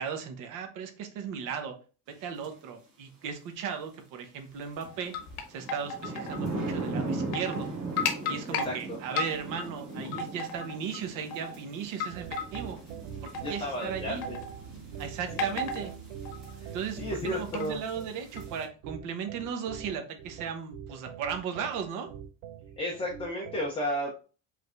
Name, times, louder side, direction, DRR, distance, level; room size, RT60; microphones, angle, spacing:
voice 1, 0.0-1.8 2.1-5.1 5.5-7.7 8.3-12.3 12.5-12.8 13.2-14.3 15.0-15.9 16.7-22.1, right 7 dB, 55° right, 6 dB, 0.9 m, -36 dB
sound 1, 2.4-2.5 4.8-18.6, right 2 dB, 40° right, 1.7 m, -39 dB
sound 2, 4.9-6.4 6.7-6.8 7.2-7.7 8.0-8.7 9.2-9.7 10.0-11.0 11.3-11.6 12.0-12.7 13.3-13.8 14.2-14.6 15.4-15.9 16.2-16.6 17.3-17.6 18.4-18.5, left 4 dB, 70° left, 1.0 m, -34 dB
sound 3, 12.1-23.7, right 8 dB, 90° right, 0.7 m, -44 dB
voice 2, 13.4-14.4 15.3-15.6 17.0-17.8 22.8-24.2, equal, 15° left, -1 dB, 0.5 m, -33 dB
5.0 x 3.2 x 2.5 m, 0.35 s
cardioid pair, 175°, 38 cm